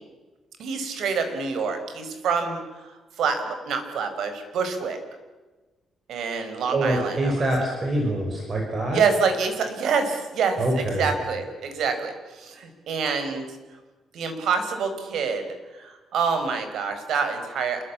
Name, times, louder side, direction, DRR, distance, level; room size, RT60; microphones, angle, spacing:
voice 1, 0.6-5.0 6.1-7.5 8.9-13.5 14.1-15.5 15.7-17.8, right 5 dB, 70° right, 8 dB, 5.2 m, -27 dB
voice 2, 6.7-9.0 10.6-11.1, right 1 dB, 30° right, 2 dB, 5.7 m, -25 dB
27.5 x 22.5 x 8.6 m, 1.2 s
cardioid pair, 165°, 0 cm